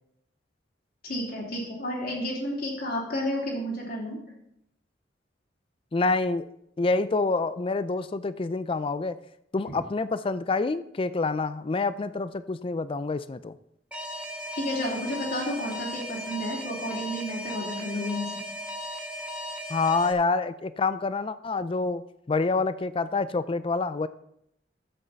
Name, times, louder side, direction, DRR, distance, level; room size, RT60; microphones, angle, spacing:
voice 1, 1.0-4.2 14.6-18.3, left 1 dB, 55° left, -2 dB, 3.0 m, -31 dB
voice 2, 5.9-6.5 6.8-9.2 9.5-13.5 19.7-24.1, left 3 dB, 30° left, 14 dB, 0.4 m, -27 dB
Alarm, 13.9-20.1, equal, 10° right, 1.3 m, -36 dB
12.0 x 7.9 x 4.0 m, 0.78 s
head